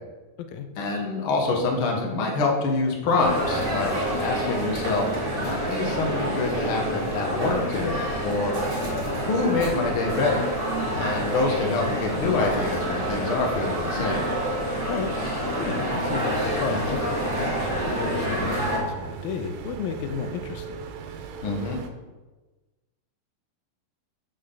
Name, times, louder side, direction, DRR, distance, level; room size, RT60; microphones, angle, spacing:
voice 1, 0.8-8.6 9.2-10.5 10.9-14.3 21.4-21.8, left 3 dB, 50° left, 0 dB, 1.8 m, -26 dB
sound 1, 3.2-18.8, right 1 dB, 20° right, 1.8 m, -27 dB
voice 2, 15.6-20.9, left 6 dB, 90° left, 7 dB, 2.6 m, -33 dB
sound 2, 16.4-21.9, right 7 dB, 80° right, 2.5 m, -39 dB
13.0 x 6.4 x 3.9 m, 1.2 s
omnidirectional pair, 4.1 m